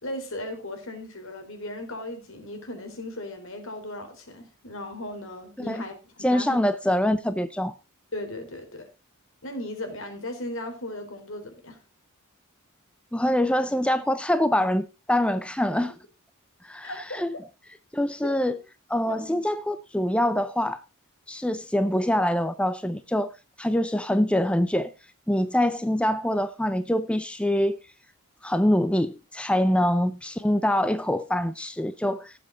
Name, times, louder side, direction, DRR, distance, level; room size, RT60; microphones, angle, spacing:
voice 1, 0.0-6.6 8.1-8.9 9.4-11.8 16.8-17.4 18.2-18.6 19.1-19.3, left 1 dB, 65° left, 4.1 m, -37 dB
voice 2, 6.2-7.7 13.1-15.9 16.6-17.3 17.9-18.6 18.9-20.8 21.3-23.3 23.6-24.9 25.3-27.8 28.4-32.3, left 1 dB, 5° left, 0.6 m, -24 dB
17.5 x 7.7 x 4.0 m
head